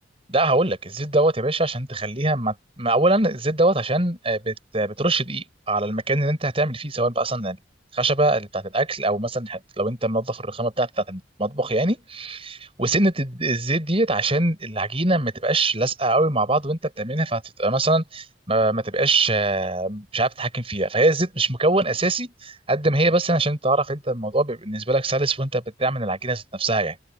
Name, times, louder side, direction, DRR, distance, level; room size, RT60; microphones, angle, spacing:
voice 1, 0.3-7.6 7.9-27.0, right 2 dB, 30° right, 6.4 m, -23 dB
open air
head